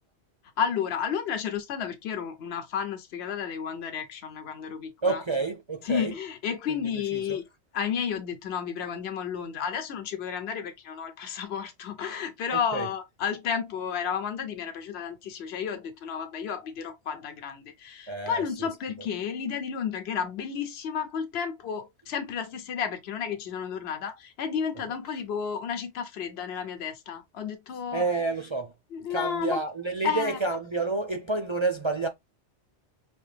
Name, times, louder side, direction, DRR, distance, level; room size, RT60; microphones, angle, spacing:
voice 1, 0.6-5.2 5.8-7.4 7.7-28.0 28.9-29.6 30.0-30.4, left 7 dB, 65° left, 1.0 m, -32 dB
voice 2, 5.0-6.1 6.7-7.4 12.5-12.9 18.1-18.7 27.9-28.7 29.1-32.1, right 3 dB, 35° right, 0.4 m, -29 dB
5.2 x 2.8 x 3.3 m
omnidirectional pair, 1.2 m